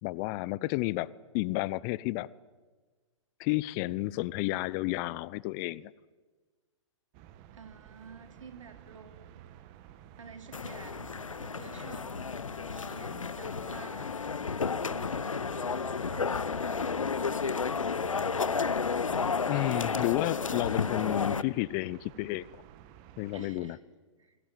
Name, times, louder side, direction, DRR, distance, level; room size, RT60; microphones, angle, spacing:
voice 1, 0.0-2.3 3.4-5.9 19.5-22.5 23.2-23.8, left 20 dB, 35° left, 0.7 m, -31 dB
sound 1, 7.1-23.5, right 11 dB, 40° right, 1.8 m, -52 dB
voice 2, 7.5-9.4 10.2-12.1 12.7-14.2 14.8-18.5 23.3-23.8 24.2-24.4, right 5 dB, 75° right, 3.8 m, -51 dB
sound 2, 10.5-21.4, left 5 dB, 85° left, 0.9 m, -32 dB
Wind instrument woodwind instrument, 11.9-20.1, left 7 dB, 65° left, 2.2 m, -47 dB
28.5 x 21.0 x 9.3 m
figure-of-eight pair, 115°, 16 cm